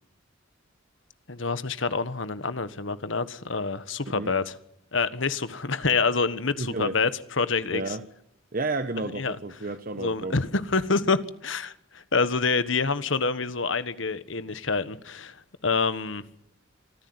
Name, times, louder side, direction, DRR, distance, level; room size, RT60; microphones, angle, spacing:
voice 1, 1.3-4.5 4.9-8.0 9.1-9.4 10.0-16.2, left 4 dB, 70° left, 1.4 m, -27 dB
voice 2, 6.6-6.9 7.7-8.0 8.5-10.3, right 2 dB, 45° right, 1.1 m, -31 dB
25.0 x 15.0 x 9.6 m
head